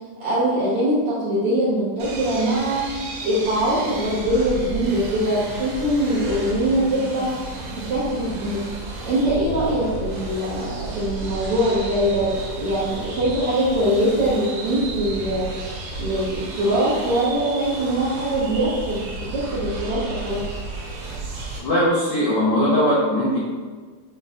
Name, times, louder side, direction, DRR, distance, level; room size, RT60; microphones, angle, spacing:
voice 1, 0.0-2.9 3.2-7.5 7.7-8.6 9.0-20.4, right 1 dB, 65° right, -9 dB, 1.5 m, -23 dB
sound 1, 2.0-21.6, right 3 dB, 85° right, 2.5 m, -33 dB
voice 2, 21.6-23.4, equal, 75° left, -8 dB, 1.2 m, -20 dB
6.8 x 3.1 x 2.4 m, 1.5 s
omnidirectional pair, 3.7 m